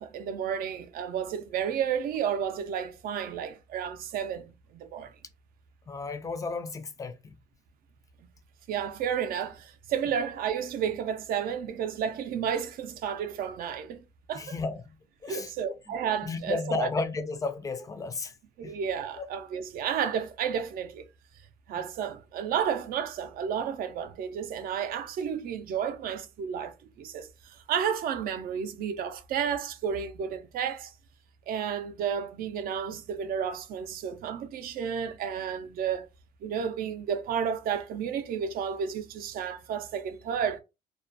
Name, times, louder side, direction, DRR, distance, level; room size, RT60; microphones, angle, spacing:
voice 1, 0.0-5.1 8.7-14.6 15.3-16.9 18.6-21.0 21.7-30.9 31.5-36.1 36.4-40.6, right 8 dB, 60° right, 0.5 m, -32 dB
voice 2, 5.9-7.3 14.3-14.8 15.2-15.7 16.2-18.3 18.6-18.7 35.2-35.3, left 3 dB, 20° left, 0.4 m, -33 dB
2.4 x 2.1 x 2.6 m
cardioid pair, 120°, 17 cm